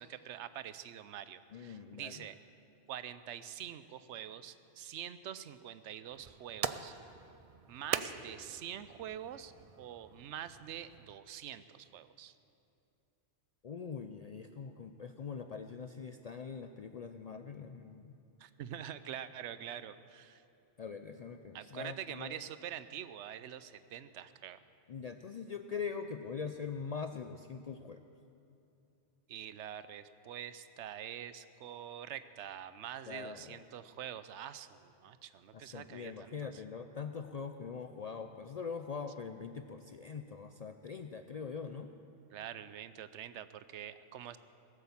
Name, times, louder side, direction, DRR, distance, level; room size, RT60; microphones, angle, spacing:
voice 1, 0.0-2.3 2.9-6.9 7.7-9.5 9.8-12.3 18.4-20.4 21.5-24.6 29.3-36.6 42.3-44.4, right 10 dB, 80° right, 13 dB, 0.9 m, -45 dB
voice 2, 1.5-2.3 13.6-18.2 20.8-22.4 24.9-28.0 33.1-33.6 35.5-41.9, left 5 dB, 60° left, 7 dB, 0.4 m, -43 dB
sound 1, 6.1-11.2, right 7 dB, 60° right, 0.3 m, -42 dB
18.5 x 8.1 x 7.1 m, 2.8 s
omnidirectional pair, 1.2 m